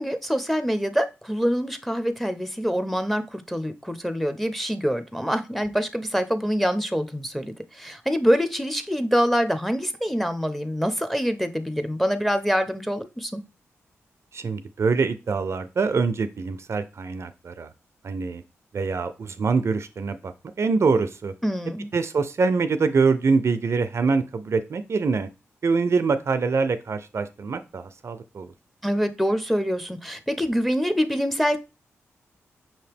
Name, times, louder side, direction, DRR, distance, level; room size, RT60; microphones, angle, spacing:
voice 1, 0.0-13.4 21.4-21.9 28.8-31.6, equal, ahead, 0.7 m, -25 dB
voice 2, 14.3-17.7 18.0-18.4 18.7-21.3 21.9-25.3 25.6-28.5, right 4 dB, 55° right, 0.4 m, -24 dB
5.5 x 2.8 x 3.4 m
supercardioid pair, 45°, 5 cm